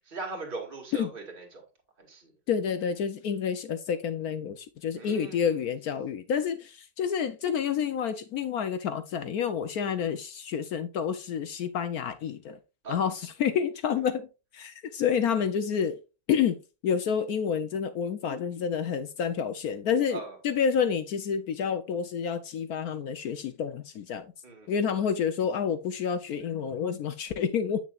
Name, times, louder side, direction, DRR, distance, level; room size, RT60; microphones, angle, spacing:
voice 1, 0.1-1.6 2.0-2.3 5.0-5.5 12.8-13.0 20.1-20.4 24.4-24.7, right 3 dB, 25° right, 2.2 m, -39 dB
voice 2, 2.5-12.6 12.9-14.3 14.5-16.0 16.3-16.6 16.8-24.3 24.7-27.8, left 7 dB, 65° left, 0.9 m, -29 dB
8.7 x 6.3 x 2.4 m
omnidirectional pair, 2.1 m